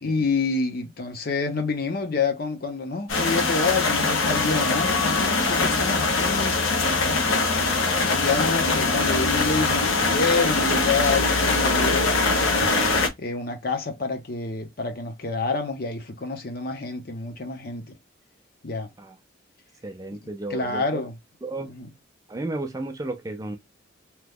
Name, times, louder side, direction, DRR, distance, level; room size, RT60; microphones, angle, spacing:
voice 1, 0.0-6.6 7.0-7.5 8.0-12.2 13.2-18.0 18.6-18.9 20.5-21.1 21.7-21.9, left 4 dB, 50° left, 0.7 m, -28 dB
sound 1, 3.1-13.1, left 3 dB, 80° left, 0.8 m, -22 dB
voice 2, 19.8-21.0 21.4-21.7 22.3-23.6, right 2 dB, 15° right, 0.4 m, -33 dB
2.9 x 2.3 x 3.4 m
head